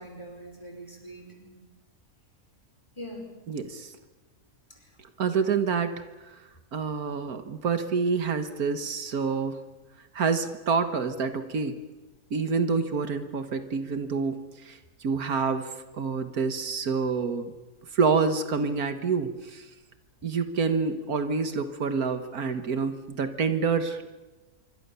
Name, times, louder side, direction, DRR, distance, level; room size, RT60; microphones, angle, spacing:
voice 1, 0.0-1.6 3.0-3.3 4.7-4.9, equal, 20° left, 3 dB, 5.0 m, -43 dB
voice 2, 3.5-4.0 5.2-6.4 6.7-9.6 10.1-11.8 12.3-17.5 17.9-19.7 20.2-24.1, right 5 dB, 80° right, 9 dB, 1.9 m, -27 dB
26.0 x 24.5 x 7.0 m, 1.2 s
omnidirectional pair, 1.6 m